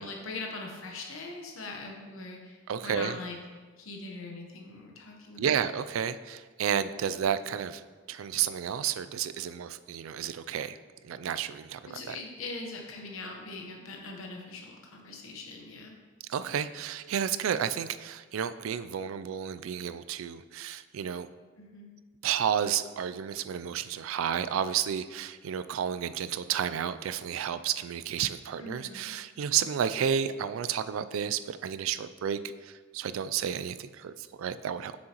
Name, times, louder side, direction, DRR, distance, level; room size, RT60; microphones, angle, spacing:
voice 1, 0.0-3.4 3.8-5.7 11.9-15.9 21.6-22.0 28.6-29.2, left 3 dB, 85° left, 1 dB, 1.0 m, -41 dB
voice 2, 2.7-3.2 5.4-7.8 8.1-10.8 11.0-12.2 16.3-21.3 22.2-35.0, right 8 dB, 80° right, 13 dB, 0.3 m, -31 dB
7.5 x 6.4 x 3.0 m, 1.4 s
head